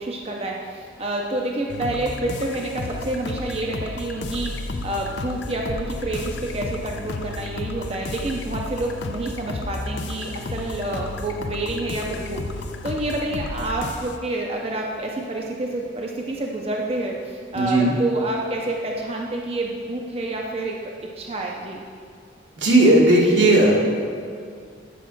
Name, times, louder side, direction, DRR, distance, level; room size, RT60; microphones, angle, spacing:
voice 1, 0.0-21.8, right 2 dB, 35° right, -1 dB, 0.6 m, -28 dB
sound 1, 1.7-14.2, left 3 dB, 70° left, 0.5 m, -32 dB
voice 2, 17.5-18.0 22.6-23.8, right 1 dB, 80° right, -2 dB, 1.6 m, -16 dB
9.3 x 4.9 x 6.0 m, 2.2 s
head